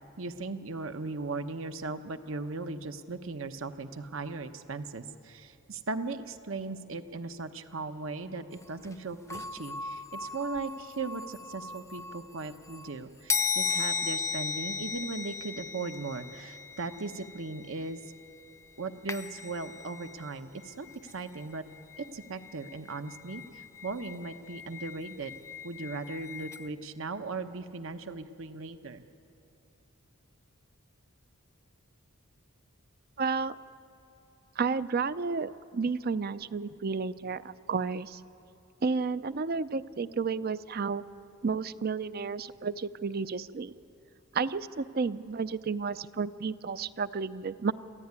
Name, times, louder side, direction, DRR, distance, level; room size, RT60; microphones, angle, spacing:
voice 1, 0.2-18.0 18.8-21.7 22.0-25.3 25.6-29.0 36.6-36.7, right 3 dB, 65° right, 9 dB, 1.0 m, -38 dB
sound 1, 8.6-8.7 8.8-8.9 9.3-12.9 13.3-18.5 19.1-20.3 20.6-26.7, left 5 dB, 15° left, 0.6 m, -37 dB
voice 2, 33.2-33.6 34.6-38.2 38.8-41.0 41.4-43.7 44.3-47.7, right 5 dB, 45° right, 15 dB, 0.5 m, -31 dB
26.5 x 14.5 x 9.6 m, 2.9 s
head